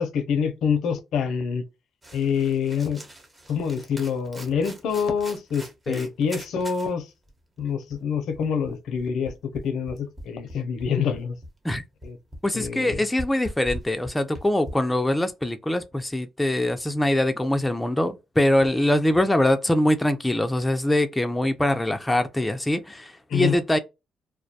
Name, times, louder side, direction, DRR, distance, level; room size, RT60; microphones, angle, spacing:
voice 1, 0.0-1.6 2.1-3.0 3.5-7.1 7.6-11.4 12.0-12.2 12.5-13.0 23.3-23.6, left 6 dB, 80° left, 0.5 m, -26 dB
sound 1, 2.0-6.9 7.3-7.4 7.6-14.7, equal, 20° right, 0.8 m, -42 dB
voice 2, 12.4-23.8, left 1 dB, 10° left, 0.4 m, -23 dB
2.3 x 2.1 x 2.6 m
cardioid pair, 90°, 0 cm